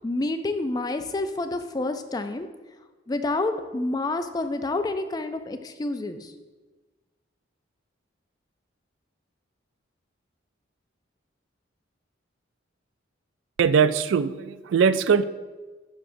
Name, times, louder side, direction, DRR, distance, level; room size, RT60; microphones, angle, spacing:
voice 1, 0.0-2.5 3.1-6.3, left 2 dB, 20° left, 8 dB, 0.3 m, -28 dB
voice 2, 13.6-15.2, right 6 dB, 70° right, 14 dB, 0.3 m, -21 dB
10.5 x 4.9 x 2.6 m, 1.3 s
head